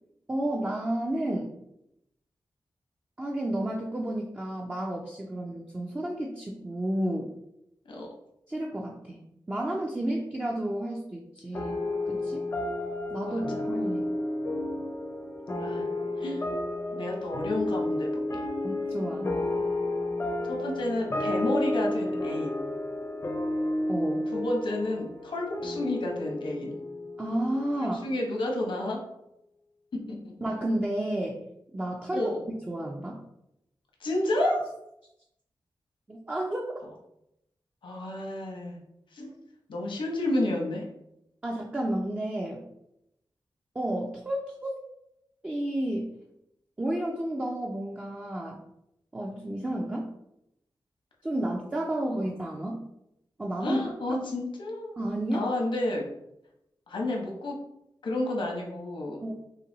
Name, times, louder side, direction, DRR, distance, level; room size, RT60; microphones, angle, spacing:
voice 1, 0.3-1.6 3.2-7.3 8.5-9.2 9.5-11.8 12.1-12.4 13.1-14.0 18.6-19.4 23.9-24.3 27.2-28.1 30.4-31.4 31.7-32.3 32.7-33.2 34.4-34.6 36.1-36.7 41.4-42.6 43.7-44.7 45.4-46.1 46.8-48.6 49.1-50.1 51.2-52.8 53.4-53.8 54.1-54.2 55.0-55.5 59.2-59.3, right 1 dB, 15° right, -2 dB, 0.5 m, -31 dB
sound 1, 11.5-28.3, left 1 dB, 30° left, 0.6 m, -32 dB
voice 2, 15.6-15.9 16.2-16.4 16.9-18.4 20.5-22.6 24.3-26.7 27.8-29.0 30.1-30.3 32.1-32.4 34.0-34.6 37.8-38.8 39.1-39.3 39.7-40.9 53.6-55.0 55.3-56.0 56.9-57.6 58.0-59.2, left 1 dB, 80° left, 0 dB, 1.1 m, -31 dB
5.6 x 2.2 x 3.9 m, 0.81 s
wide cardioid pair, 155°, 8 cm